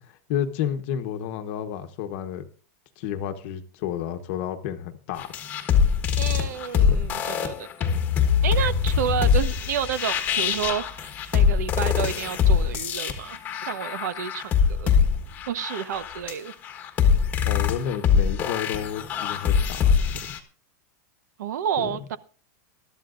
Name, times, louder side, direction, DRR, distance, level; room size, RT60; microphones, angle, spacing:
voice 1, 0.0-2.5 3.0-5.3 6.9-7.0 17.4-20.3 21.8-21.9, left 9 dB, 40° left, 7 dB, 1.1 m, -31 dB
sound 1, 5.2-20.4, left 7 dB, 20° left, 1.3 m, -23 dB
voice 2, 6.2-7.9 8.4-13.4 13.7-14.9 15.5-16.5 21.4-22.2, right 9 dB, 75° right, 14 dB, 1.1 m, -30 dB
21.0 x 12.5 x 2.5 m, 0.39 s
supercardioid pair, 180°, 9 cm